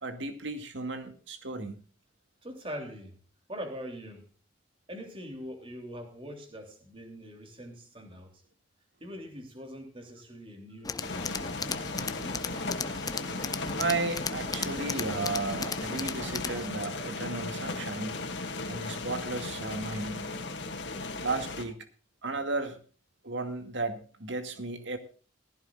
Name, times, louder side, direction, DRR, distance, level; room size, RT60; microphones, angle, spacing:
voice 1, 0.0-1.8 13.8-18.2 18.7-20.3 21.2-21.9 22.2-22.8 23.2-25.0, right 3 dB, 65° right, 2.2 m, -34 dB
voice 2, 2.4-3.2 3.5-4.3 4.9-8.4 9.0-11.6, equal, 25° right, 3.1 m, -43 dB
Tools, 10.8-16.7, left 5 dB, 20° left, 0.6 m, -36 dB
sound 1, 11.0-21.7, left 3 dB, 60° left, 2.5 m, -36 dB
18.0 x 15.5 x 2.5 m
head